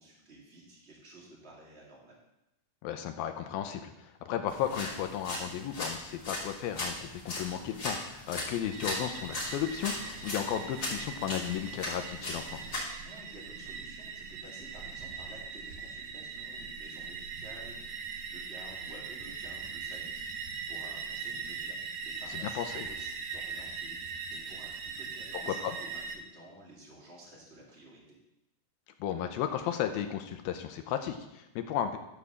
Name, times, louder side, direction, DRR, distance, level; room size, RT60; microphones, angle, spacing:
voice 1, 0.0-2.2 13.0-21.8 22.0-28.1, right 1 dB, 20° right, -4 dB, 2.2 m, -52 dB
voice 2, 2.8-12.6 22.3-22.9 25.3-25.8 29.0-32.0, left 10 dB, 80° left, 7 dB, 2.2 m, -34 dB
sound 1, 4.5-12.8, left 1 dB, 25° left, 2.7 m, -39 dB
sound 2, 8.7-26.2, right 5 dB, 75° right, 2.1 m, -41 dB
12.0 x 4.9 x 7.0 m, 0.91 s
omnidirectional pair, 4.8 m